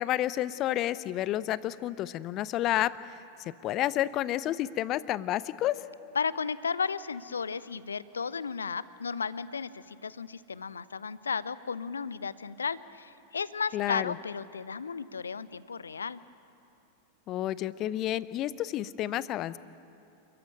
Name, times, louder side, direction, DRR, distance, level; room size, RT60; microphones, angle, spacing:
voice 1, 0.0-3.1 3.4-5.8 13.7-14.2 17.3-19.6, left 13 dB, 35° left, 18 dB, 0.6 m, -30 dB
voice 2, 6.1-16.2, left 5 dB, 75° left, 18 dB, 0.6 m, -34 dB
28.0 x 14.5 x 9.2 m, 2.7 s
figure-of-eight pair, 90°, 0 cm